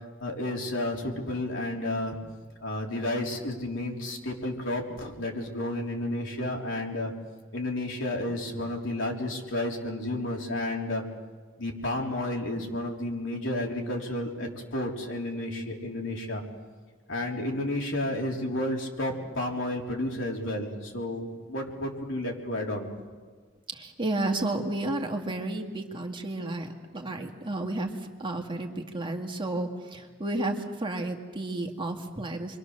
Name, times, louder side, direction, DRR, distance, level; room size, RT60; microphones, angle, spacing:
voice 1, 0.2-2.1 2.6-7.1 7.5-11.0 11.6-16.4 17.1-22.9, left 1 dB, 70° left, 0 dB, 3.8 m, -31 dB
voice 2, 23.7-27.9 28.2-32.6, right 2 dB, 25° right, 2 dB, 2.0 m, -32 dB
29.0 x 23.5 x 6.7 m, 1.5 s
head